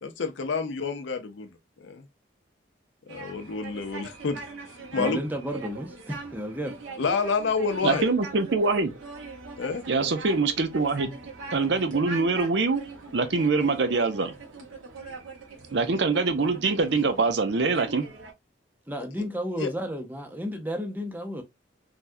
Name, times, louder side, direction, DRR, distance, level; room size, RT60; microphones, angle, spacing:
voice 1, 0.0-1.5 1.8-2.1 3.1-4.4 4.7-5.2 7.0-8.0 9.6-9.8 19.1-19.2 19.6-19.7, left 4 dB, 70° left, 0.5 m, -29 dB
sound 1, 3.1-18.3, right 3 dB, 90° right, 0.9 m, -42 dB
voice 2, 5.0-6.8 18.9-21.4, equal, 10° right, 0.5 m, -32 dB
voice 3, 7.8-8.9 9.9-11.1 11.5-12.8 13.1-14.3 15.7-18.1, right 3 dB, 65° right, 0.5 m, -24 dB
3.4 x 2.3 x 2.5 m
head